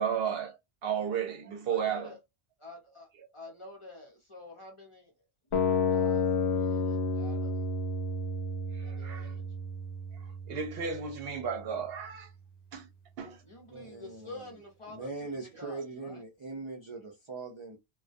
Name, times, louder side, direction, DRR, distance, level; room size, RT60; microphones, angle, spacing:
voice 1, 0.0-2.1 8.7-9.3 10.1-12.3 12.7-12.9 13.2-13.4, right 7 dB, 70° right, 0.8 m, -34 dB
voice 2, 1.7-2.2 2.6-3.1 3.3-5.1 5.4-7.7 8.8-9.4 13.4-16.2, left 2 dB, 30° left, 0.8 m, -49 dB
sound 1, 5.5-11.5, left 4 dB, 75° left, 0.8 m, -31 dB
voice 3, 13.7-14.5 14.9-17.8, right 3 dB, 40° right, 0.4 m, -41 dB
2.2 x 2.2 x 2.5 m
omnidirectional pair, 1.1 m